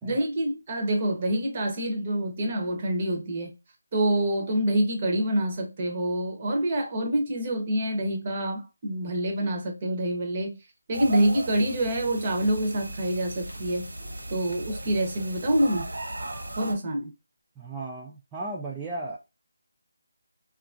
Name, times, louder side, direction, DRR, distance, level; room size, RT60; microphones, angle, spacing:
voice 1, 0.0-3.5 3.9-10.5 10.9-13.9 14.3-15.9 16.6-17.1, right 1 dB, 30° right, 0.8 m, -26 dB
sound 1, 10.9-16.7, right 1 dB, 80° right, 1.3 m, -36 dB
voice 2, 17.6-19.2, right 2 dB, 10° right, 0.4 m, -35 dB
2.8 x 2.4 x 2.4 m
figure-of-eight pair, 170°, 0 cm